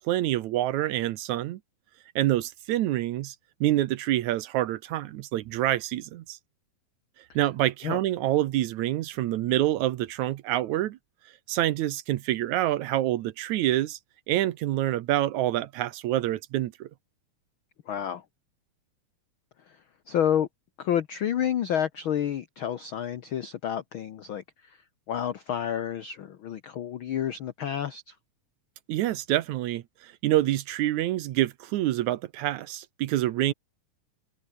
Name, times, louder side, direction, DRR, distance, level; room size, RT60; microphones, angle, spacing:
voice 1, 0.0-1.6 2.2-3.4 3.6-6.4 7.4-11.0 11.5-14.0 14.3-16.9 28.9-33.5, right 14 dB, 75° right, 2.1 m, -27 dB
voice 2, 17.9-18.2 20.1-20.5 20.8-24.4 25.1-28.1, left 9 dB, 85° left, 1.1 m, -29 dB
omnidirectional pair, 3.7 m